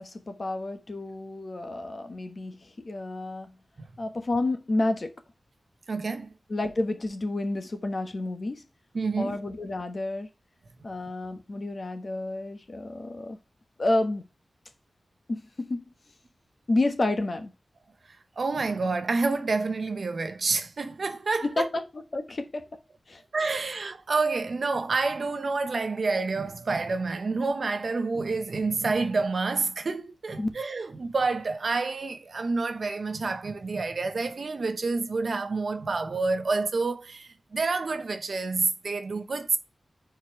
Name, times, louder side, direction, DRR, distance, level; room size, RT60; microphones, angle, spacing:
voice 1, 0.0-3.5 4.0-5.1 6.5-8.6 9.2-10.3 10.8-13.4 13.8-14.2 15.3-15.8 16.7-17.5 21.4-22.7 23.1-23.2 30.4-30.5, left 2 dB, 45° left, 1.1 m, -30 dB
voice 2, 5.9-6.3 8.9-9.4 18.4-21.7 23.3-39.6, right 3 dB, 60° right, 0.9 m, -28 dB
4.7 x 4.5 x 4.6 m
wide cardioid pair, 95°, 0 cm